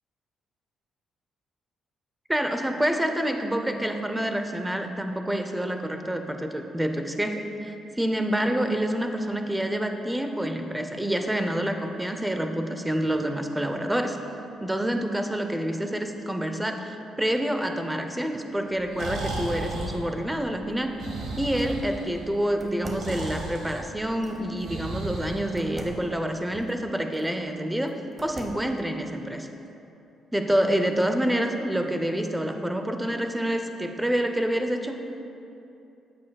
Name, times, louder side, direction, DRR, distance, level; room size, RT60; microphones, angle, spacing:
voice 1, 2.3-14.2 14.6-29.5 30.3-35.1, right 1 dB, 10° right, 6 dB, 0.5 m, -27 dB
Breathing, 18.7-26.1, right 2 dB, 85° right, 1.7 m, -35 dB
sound 1, 20.5-21.9 22.6-24.5 25.6-27.4 27.9-28.8, right 2 dB, 30° right, 1.0 m, -44 dB
9.7 x 8.2 x 2.3 m, 2.8 s
cardioid pair, 90°, 0 cm